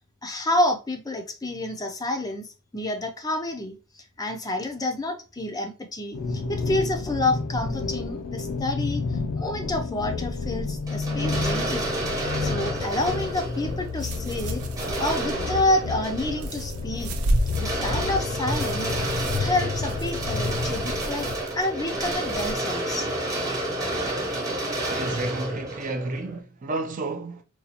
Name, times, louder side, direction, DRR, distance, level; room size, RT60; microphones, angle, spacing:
voice 1, 0.2-14.6 15.0-17.1 17.6-19.0 19.4-21.3 21.6-23.1, left 1 dB, 20° left, 0.4 m, -29 dB
sound 1, 6.1-21.4, left 4 dB, 75° left, 0.4 m, -31 dB
sound 2, 10.9-26.4, right 1 dB, 15° right, 0.8 m, -31 dB
sound 3, 12.7-22.5, right 1 dB, 90° right, 0.5 m, -34 dB
voice 2, 24.9-27.4, right 2 dB, 40° right, 0.4 m, -31 dB
4.0 x 2.3 x 2.8 m
head